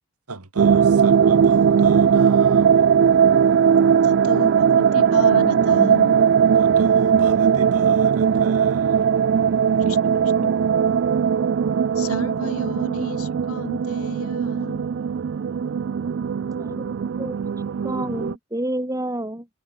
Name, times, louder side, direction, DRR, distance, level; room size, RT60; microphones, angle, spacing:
voice 1, 0.3-3.0 6.6-9.1, right 3 dB, 85° right, 2.5 m, -36 dB
Sci-Fi Survival Dreamscape, 0.6-18.3, right 7 dB, 55° right, 0.3 m, -19 dB
voice 2, 4.0-6.1 9.8-10.5 11.9-14.8, left 3 dB, 75° left, 1.2 m, -33 dB
voice 3, 16.6-17.5 17.8-19.5, right 1 dB, 15° right, 3.0 m, -29 dB
head